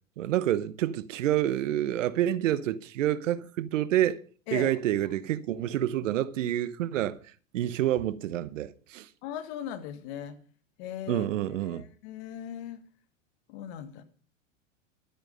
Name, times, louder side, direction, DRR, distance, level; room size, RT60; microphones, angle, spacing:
voice 1, 0.2-4.2 4.5-7.2 7.5-9.1 11.1-11.9, right 12 dB, 80° right, 1.0 m, -28 dB
voice 2, 9.2-10.4 10.8-11.3 11.7-12.8 13.5-14.0, left 10 dB, 55° left, 1.9 m, -38 dB
12.5 x 8.9 x 5.3 m
hypercardioid pair, 110°, 38 cm